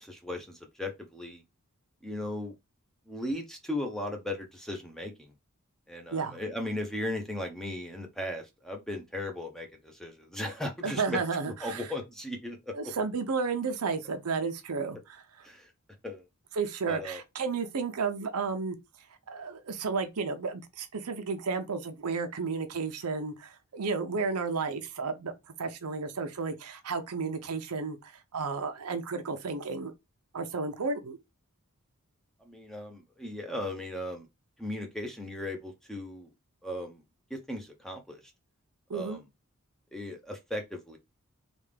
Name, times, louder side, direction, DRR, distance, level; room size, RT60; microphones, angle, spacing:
voice 1, 0.0-1.4 2.0-2.5 3.1-5.3 5.9-11.2 11.6-12.7 15.4-15.7 16.0-16.2 16.9-17.2 32.5-34.3 34.6-36.3 36.6-37.0 37.3-38.2 38.9-39.2 39.9-41.0, left 1 dB, ahead, 0.6 m, -37 dB
voice 2, 10.8-11.9 12.7-15.5 16.5-18.8 19.3-25.3 25.6-29.9 30.3-31.2 38.9-39.2, right 4 dB, 85° right, 0.7 m, -32 dB
3.4 x 2.4 x 3.3 m
head